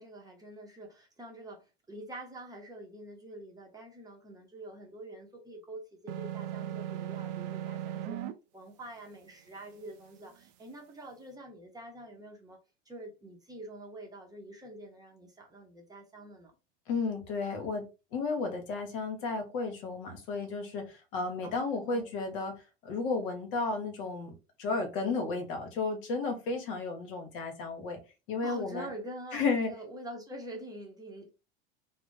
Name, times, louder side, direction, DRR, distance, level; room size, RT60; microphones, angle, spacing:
voice 1, 0.0-8.2 8.5-12.6 12.9-16.5 21.4-22.1 28.4-31.3, right 1 dB, 10° right, 0.7 m, -46 dB
sound 1, 6.1-8.3, right 11 dB, 45° right, 0.4 m, -37 dB
voice 2, 16.9-17.8 18.1-22.5 22.8-24.3 24.6-28.0 28.3-28.9 29.3-29.7, left 4 dB, 60° left, 0.9 m, -33 dB
2.4 x 2.0 x 3.6 m
hypercardioid pair, 80°, 31 cm